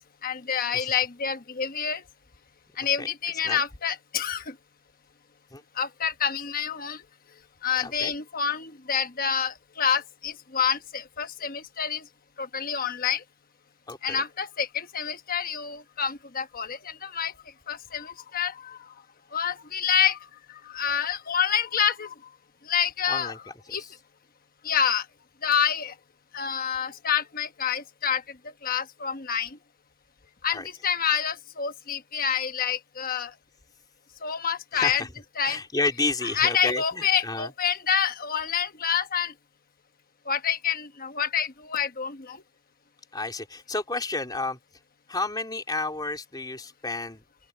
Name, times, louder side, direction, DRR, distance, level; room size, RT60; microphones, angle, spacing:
voice 1, 0.2-2.0 2.8-4.5 5.8-7.0 7.6-12.0 12.4-13.2 14.0-17.3 17.7-18.8 19.3-20.2 20.7-22.1 22.7-23.4 23.7-23.8 24.6-25.0 25.4-25.9 26.3-28.2 28.6-29.6 30.4-33.3 34.2-35.0 35.4-35.6 36.3-39.3 40.3-42.4, left 7 dB, 40° left, 1.1 m, -27 dB
voice 2, 7.8-8.1 13.9-14.2 23.1-23.4 23.8-23.9 30.5-30.7 34.7-35.1 35.4-37.5 43.1-44.6 45.1-47.2, left 3 dB, 20° left, 3.7 m, -31 dB
open air
head